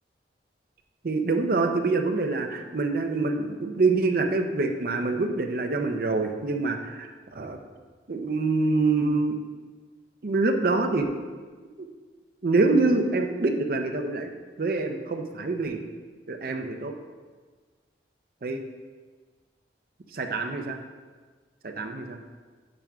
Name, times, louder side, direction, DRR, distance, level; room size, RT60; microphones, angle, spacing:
voice 1, 1.0-7.6 8.1-9.4 10.2-11.1 11.8-11.9 12.4-14.3 14.6-15.8 16.3-16.9 18.4-18.6 20.2-20.7 21.6-22.2, right 3 dB, 50° right, 5 dB, 0.5 m, -25 dB
8.6 x 5.9 x 2.3 m, 1.5 s
head